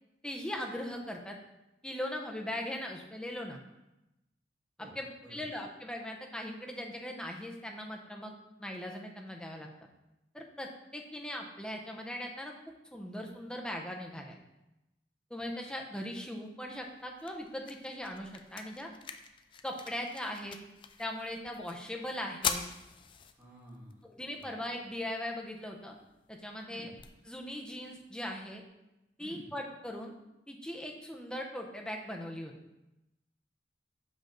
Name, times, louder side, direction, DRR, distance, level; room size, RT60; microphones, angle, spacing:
voice 1, 0.2-1.4 1.8-3.6 4.8-8.3 8.6-9.7 10.3-12.5 12.9-14.4 15.3-18.9 19.6-20.6 21.0-22.6 24.0-25.9 26.3-26.9 27.3-28.6 29.2-30.1 30.5-32.5, left 1 dB, 5° left, 1 dB, 0.7 m, -39 dB
sound 1, 16.7-28.7, left 7 dB, 30° left, 0.4 m, -44 dB
voice 2, 23.4-23.9 24.3-24.5 26.7-26.9 29.2-29.5, right 1 dB, 10° right, -5 dB, 1.8 m, -51 dB
5.8 x 5.3 x 3.8 m, 0.94 s
head